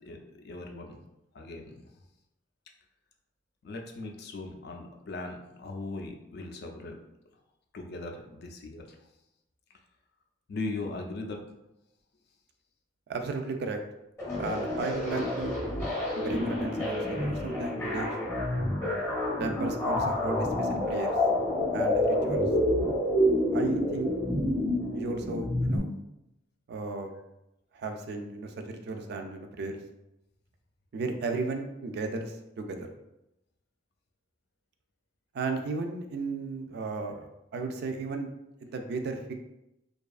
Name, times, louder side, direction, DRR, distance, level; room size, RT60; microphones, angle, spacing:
voice 1, 0.4-1.0 1.3-1.8 3.6-7.0 7.7-8.8 10.5-11.4, left 2 dB, 60° left, 3 dB, 0.4 m, -39 dB
voice 2, 13.1-13.8 14.4-15.6 16.1-18.1 19.4-21.1 21.7-22.4 23.5-24.1 24.9-25.9 26.7-27.1 27.7-29.8 30.9-32.9 35.3-38.3 38.6-39.3, right 3 dB, 60° right, 5 dB, 0.3 m, -34 dB
sound 1, 14.2-25.8, left 1 dB, 15° left, 0.7 m, -28 dB
2.6 x 2.3 x 2.3 m, 0.89 s
head